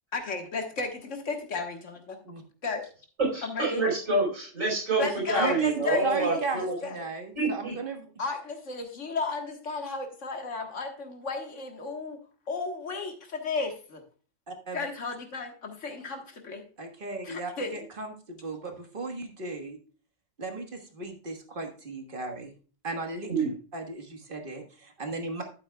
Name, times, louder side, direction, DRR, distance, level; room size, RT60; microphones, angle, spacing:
voice 1, 0.1-1.8 2.6-2.9 3.4-3.9 5.0-6.4 6.8-7.0 8.2-12.2 12.5-14.0 14.7-16.6 17.2-17.8, left 4 dB, 70° left, 4 dB, 1.8 m, -33 dB
voice 2, 3.3-6.7 7.3-7.7 23.3-23.5, right 2 dB, 85° right, -1 dB, 4.8 m, -27 dB
voice 3, 5.3-8.1 14.5-14.8 16.8-19.8 20.4-22.5 22.8-23.3 23.7-25.4, right 4 dB, 45° right, 4 dB, 1.7 m, -35 dB
12.0 x 8.5 x 2.3 m, 0.39 s
omnidirectional pair, 1.3 m